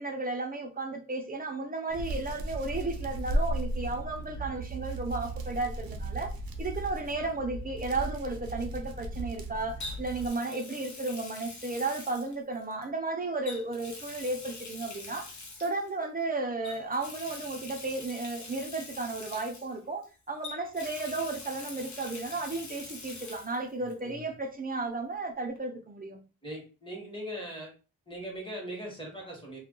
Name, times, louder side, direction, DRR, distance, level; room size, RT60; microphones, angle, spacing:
voice 1, 0.0-6.3 6.6-15.3 15.6-26.2, right 3 dB, 25° right, 0.5 m, -34 dB
Hands, 1.9-10.3, right 1 dB, 70° right, 0.6 m, -35 dB
Water tap faucet, 6.8-7.1 9.8-12.8 13.4-15.9 16.6-20.1 20.4-23.6 23.9-24.0 25.5-25.6, left 3 dB, 50° left, 0.8 m, -44 dB
voice 2, 23.8-24.3 26.4-27.7 28.1-29.6, equal, 15° left, 1.1 m, -40 dB
2.4 x 2.2 x 3.7 m
wide cardioid pair, 110°, 36 cm